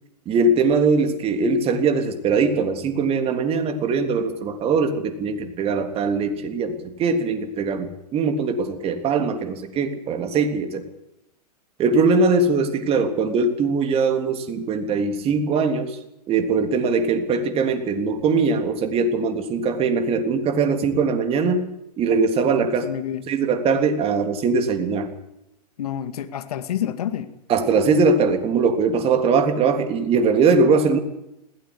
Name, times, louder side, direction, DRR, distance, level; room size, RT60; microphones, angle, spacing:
voice 1, 0.3-10.8 11.8-16.0 16.3-21.7 22.0-22.8 23.3-25.1 27.5-31.0, right 4 dB, 30° right, 6 dB, 3.4 m, -21 dB
voice 2, 22.6-23.3 25.8-27.3 30.9-31.0, left 10 dB, 65° left, 10 dB, 2.4 m, -29 dB
20.5 x 17.0 x 8.3 m, 0.87 s
hypercardioid pair, 115°, 21 cm